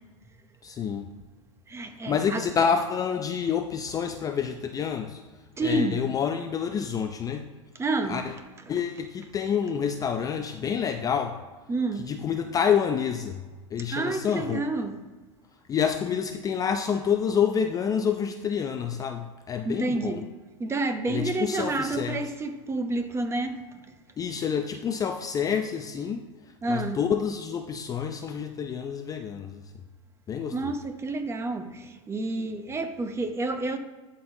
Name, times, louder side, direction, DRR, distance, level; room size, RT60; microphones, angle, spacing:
voice 1, 0.6-1.1 2.1-5.2 5.6-7.5 8.1-8.3 8.7-11.4 12.1-13.4 13.7-14.6 15.7-20.2 21.1-22.2 24.2-26.2 26.7-29.6 30.3-30.7, left 7 dB, 20° left, 0.4 m, -28 dB
voice 2, 1.7-2.5 5.6-6.1 7.8-8.3 11.7-12.1 13.9-15.0 19.6-20.3 20.6-23.6 26.6-27.0 30.5-33.8, right 2 dB, 15° right, 0.6 m, -29 dB
11.5 x 5.3 x 2.7 m
supercardioid pair, 120°, 17 cm